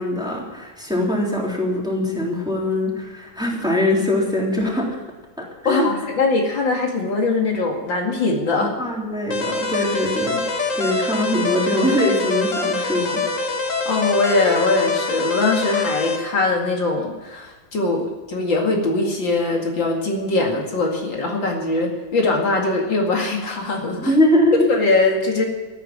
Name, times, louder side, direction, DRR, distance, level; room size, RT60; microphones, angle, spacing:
voice 1, 0.0-5.0 5.4-6.0 8.5-10.4 10.8-13.2 24.0-24.7, left 1 dB, ahead, -3 dB, 3.5 m, -22 dB
voice 2, 5.6-8.7 13.9-24.1 24.7-25.5, left 3 dB, 75° left, 1 dB, 2.9 m, -21 dB
sound 1, 9.3-16.2, left 3 dB, 40° left, 2.0 m, -25 dB
14.5 x 9.4 x 10.0 m, 1.3 s
omnidirectional pair, 2.1 m